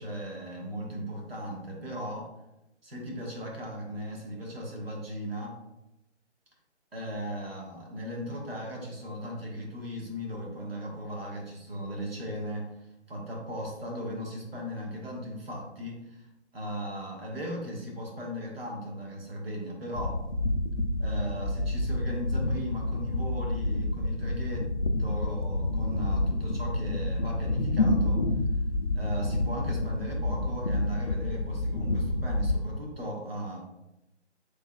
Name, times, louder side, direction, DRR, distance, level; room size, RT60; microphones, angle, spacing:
voice 1, 0.0-2.3 2.8-5.6 6.9-12.7 13.1-16.3 16.5-20.2 21.0-24.7 25.0-28.2 28.9-33.6, equal, 55° right, -1 dB, 1.4 m, -37 dB
sound 1, 19.9-32.6, left 2 dB, 45° left, 0.4 m, -29 dB
6.0 x 3.4 x 2.3 m, 0.90 s
figure-of-eight pair, 150°, 35 cm